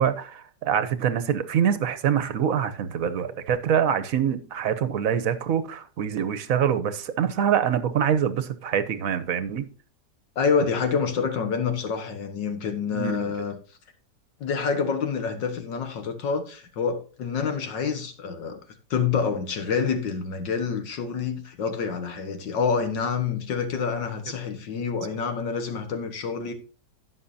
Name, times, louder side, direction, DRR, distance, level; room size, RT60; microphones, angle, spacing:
voice 1, 0.0-9.6 12.9-13.3, right 8 dB, 55° right, 1.1 m, -25 dB
voice 2, 10.4-13.6 14.4-18.6 18.9-26.5, left 6 dB, 80° left, 2.1 m, -27 dB
15.5 x 6.0 x 2.7 m
omnidirectional pair, 1.9 m